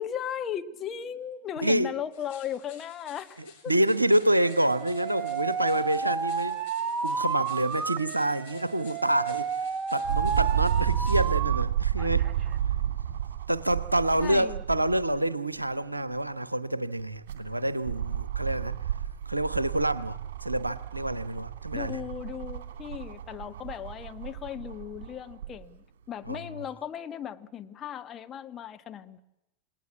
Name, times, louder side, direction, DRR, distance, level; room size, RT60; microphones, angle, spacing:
voice 1, 0.0-3.7 14.2-14.6 21.7-29.2, left 9 dB, 25° left, 1.6 m, -37 dB
sound 1, 2.1-11.2, left 7 dB, 50° left, 7.2 m, -54 dB
voice 2, 3.7-6.6 7.0-12.3 13.5-18.8 19.3-22.0 26.3-26.4, right 1 dB, 85° right, 1.0 m, -27 dB
Alarm, 4.4-11.6 12.0-12.6, right 6 dB, 30° right, 1.2 m, -32 dB
sound 2, 10.0-15.1 15.6-15.7 17.0-25.5 26.3-26.4, right 10 dB, 55° right, 3.1 m, -31 dB
28.5 x 19.5 x 8.5 m
figure-of-eight pair, 90°, 0 cm